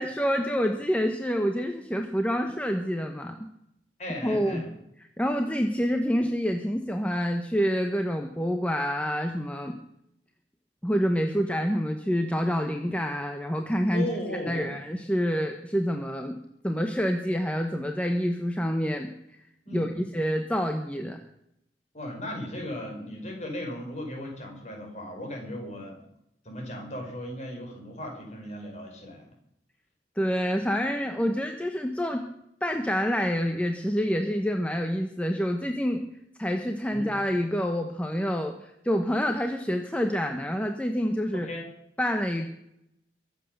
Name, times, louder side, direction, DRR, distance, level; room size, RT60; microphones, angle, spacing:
voice 1, 0.0-3.4 4.2-4.6 5.2-9.7 10.8-14.1 14.5-16.4 16.6-19.1 19.7-21.2 30.2-32.3 32.6-36.0 36.4-41.5 42.0-42.5, equal, 10° left, 4 dB, 1.0 m, -27 dB
voice 2, 4.0-4.7 13.9-14.7 19.7-20.0 21.9-26.0 26.5-29.3 36.9-37.1 41.3-41.7, left 1 dB, 40° left, 2 dB, 5.4 m, -36 dB
22.5 x 8.1 x 6.6 m, 0.77 s
head